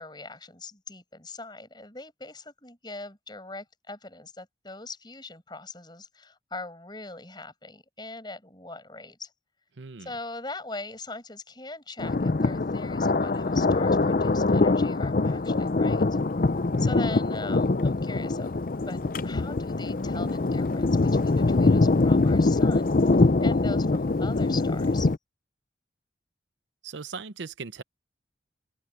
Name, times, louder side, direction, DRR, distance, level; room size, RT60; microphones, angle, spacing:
voice 1, 0.0-9.3 10.0-16.2 16.8-25.1, left 3 dB, 25° left, 7.7 m, -41 dB
voice 2, 9.8-10.1 26.8-27.8, right 5 dB, 85° right, 0.7 m, -38 dB
Thunder, 12.0-25.2, left 3 dB, 50° left, 0.6 m, -23 dB
open air
head